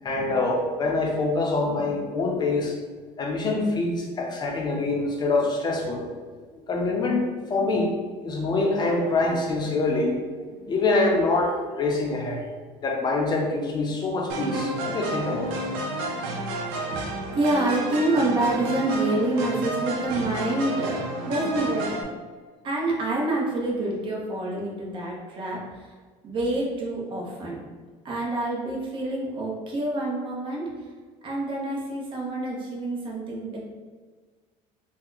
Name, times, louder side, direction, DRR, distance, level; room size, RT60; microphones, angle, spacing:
voice 1, 0.0-2.7 3.2-6.1 6.7-7.2 7.5-7.9 8.2-12.4 12.8-15.6, left 3 dB, 30° left, 1 dB, 0.7 m, -25 dB
sound 1, 14.3-22.0, right 2 dB, 85° right, 0.6 m, -31 dB
voice 2, 16.9-22.0 22.6-25.9 26.2-27.6 28.0-30.7 31.2-33.6, right 2 dB, 35° right, -4 dB, 0.9 m, -27 dB
2.8 x 2.2 x 3.9 m, 1.5 s
cardioid pair, 120°, 14 cm